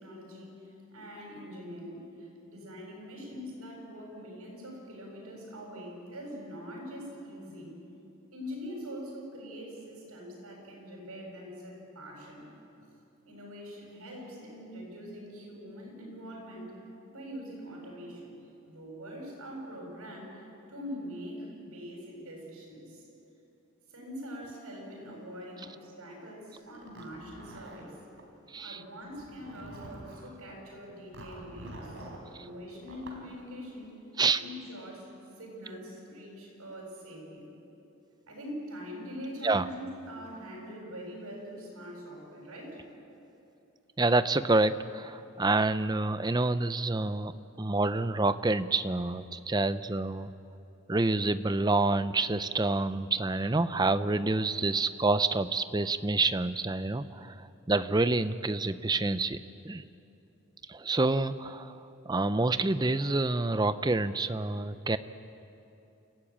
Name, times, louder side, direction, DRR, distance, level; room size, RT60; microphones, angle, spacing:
voice 1, 0.0-7.7 8.3-12.5 13.2-16.8 17.1-18.3 18.7-23.1 23.9-28.0 28.6-34.0 34.3-35.1 35.4-37.5 38.3-42.8, equal, 90° right, -2 dB, 7.6 m, -43 dB
Zipper (clothing), 26.8-28.3 29.1-30.3 31.1-32.3 32.8-33.2, right 1 dB, 60° right, 3.8 m, -47 dB
voice 2, 44.0-50.3 50.9-59.4 59.6-59.8 60.7-61.8 62.1-65.0, right 2 dB, 20° right, 13 dB, 0.5 m, -28 dB
29.5 x 15.0 x 8.8 m, 2.8 s
head